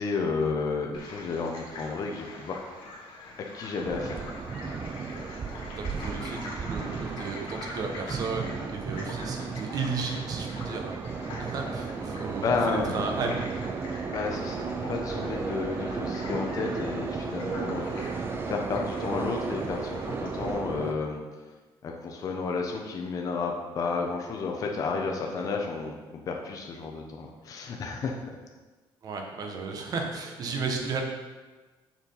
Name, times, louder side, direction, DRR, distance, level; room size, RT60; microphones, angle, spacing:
voice 1, 0.0-2.6 3.5-4.3 12.4-13.1 14.1-18.1 18.4-21.2 21.8-26.0 26.3-28.1, left 4 dB, 35° left, 1 dB, 0.8 m, -31 dB
sound 1, 0.9-20.5, left 2 dB, 60° left, 1.9 m, -44 dB
sound 2, 3.8-20.9, right 5 dB, 25° right, 0.4 m, -34 dB
voice 2, 5.8-11.0 11.4-13.4 25.2-25.4 29.0-31.0, right 4 dB, 40° right, 2 dB, 1.1 m, -34 dB
6.9 x 4.4 x 5.5 m, 1.3 s
cardioid pair, 155°, 10 cm